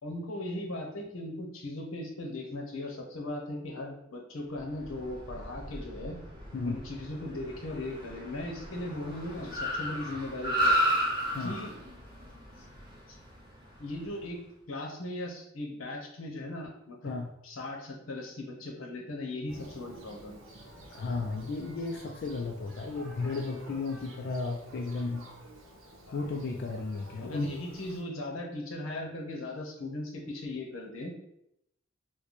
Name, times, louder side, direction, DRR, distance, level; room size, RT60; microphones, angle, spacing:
voice 1, 0.0-6.2 6.6-10.8 11.4-11.7 12.6-12.7 13.1-13.2 13.8-14.4 14.7-17.1 17.4-20.4 26.1-26.2 27.2-31.1, left 1 dB, 90° left, 1 dB, 0.8 m, -38 dB
Car, 4.7-14.2, equal, 25° right, 0.8 m, -34 dB
Thunder, 19.5-28.0, right 1 dB, 85° right, 0.7 m, -50 dB
voice 2, 20.9-25.3 26.1-27.5, left 3 dB, 55° left, 1 dB, 0.3 m, -34 dB
3.0 x 2.1 x 4.0 m, 0.78 s
head